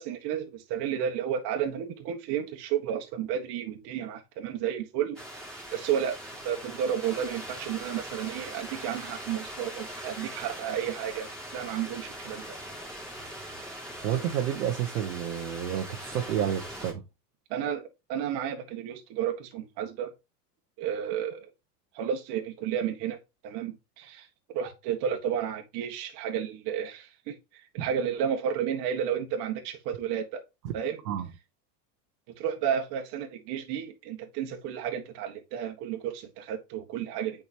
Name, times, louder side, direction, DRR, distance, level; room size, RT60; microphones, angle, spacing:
voice 1, 0.0-6.2 6.4-12.6 17.5-20.1 20.8-21.5 21.9-23.2 23.4-27.3 27.7-30.4 30.7-31.0 32.4-37.4, right 9 dB, 55° right, 1.8 m, -32 dB
sound 1, 5.2-16.9, equal, ahead, 2.9 m, -41 dB
voice 2, 14.0-17.0 31.1-31.3, right 10 dB, 90° right, 1.1 m, -30 dB
7.8 x 5.1 x 3.0 m
supercardioid pair, 125°, 47 cm